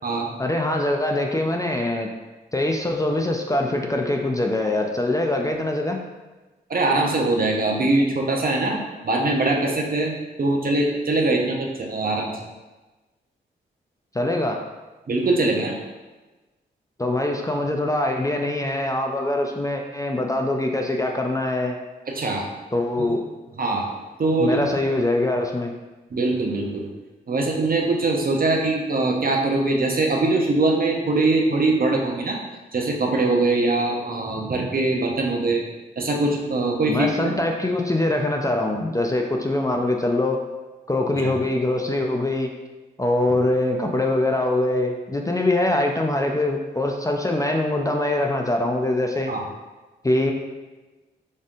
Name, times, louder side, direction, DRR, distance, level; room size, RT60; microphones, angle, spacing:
voice 1, 0.4-2.1 2.5-6.0 14.1-14.6 17.0-21.8 22.7-23.3 24.4-25.7 36.9-40.4 40.9-42.5 43.0-49.3 50.0-50.3, left 1 dB, 15° left, 2 dB, 0.5 m, -23 dB
voice 2, 6.7-12.4 15.1-15.8 22.1-22.5 23.0-23.1 23.6-23.9 24.2-24.7 26.1-26.9 27.3-32.4 32.7-35.6 36.0-37.4 41.2-41.3 49.3-49.4, right 2 dB, 45° right, 0 dB, 0.8 m, -22 dB
4.1 x 3.4 x 2.5 m, 1.2 s
supercardioid pair, 40°, 20 cm